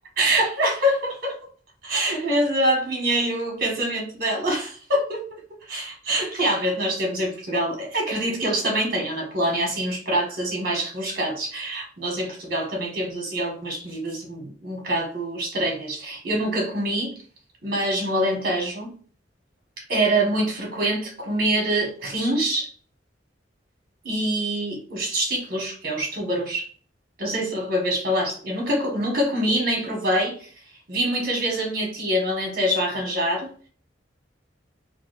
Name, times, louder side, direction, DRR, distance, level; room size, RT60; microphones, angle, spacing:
voice 1, 0.2-1.4 1.8-5.4 5.7-17.1 17.6-18.9 19.8-22.7 24.0-26.7 27.2-30.5 30.9-33.5, right 1 dB, 55° right, 1.5 m, -25 dB
4.6 x 2.1 x 2.5 m
head